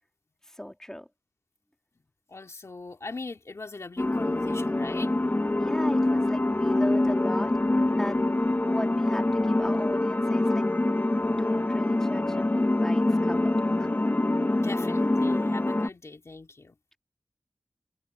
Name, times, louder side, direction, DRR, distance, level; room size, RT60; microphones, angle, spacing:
voice 1, 0.5-1.1 5.6-7.5 8.0-8.2 8.7-10.6 11.2-13.9, equal, 10° left, 3.6 m, -37 dB
voice 2, 2.3-5.1 14.6-16.8, left 3 dB, 55° left, 2.6 m, -41 dB
sound 1, 4.0-15.9, left 2 dB, 35° left, 1.6 m, -25 dB
cardioid pair, 50°, 6 cm